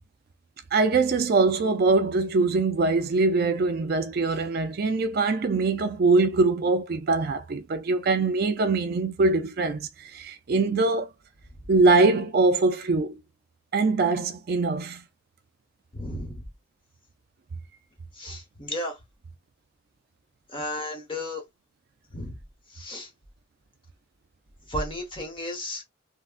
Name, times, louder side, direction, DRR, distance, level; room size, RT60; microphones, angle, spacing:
voice 1, 0.7-11.1 11.7-13.2 13.7-15.0, right 3 dB, 45° right, 0.3 m, -23 dB
voice 2, 15.9-16.4 18.1-19.0 20.5-21.4 22.1-22.4 22.7-23.1 24.7-25.8, left 1 dB, 25° left, 0.9 m, -33 dB
3.7 x 2.1 x 2.4 m
head